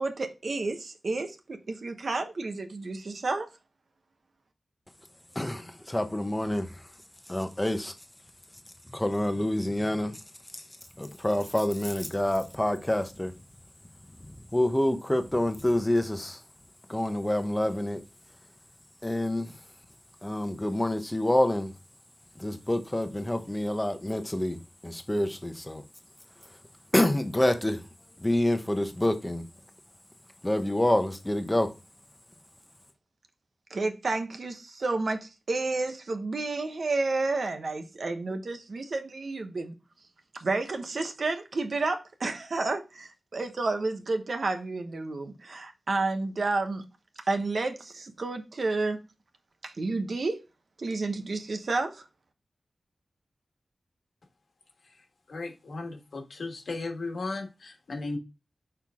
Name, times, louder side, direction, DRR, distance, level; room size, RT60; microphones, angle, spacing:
voice 1, 0.0-3.5 33.7-39.7 40.3-46.8 47.3-49.0 49.6-50.4 50.8-52.0, right 3 dB, 65° right, 1.0 m, -30 dB
voice 2, 5.3-6.8 7.3-7.9 8.9-10.2 10.5-10.6 11.0-13.3 14.3-16.4 16.9-18.0 19.0-19.5 20.2-21.7 22.4-24.6 24.8-25.8 26.9-27.9 28.2-29.5 30.4-31.7, left 1 dB, 15° left, 0.9 m, -27 dB
voice 3, 55.3-58.2, left 3 dB, 80° left, 1.4 m, -36 dB
5.8 x 4.5 x 3.6 m
wide cardioid pair, 105°, 0 cm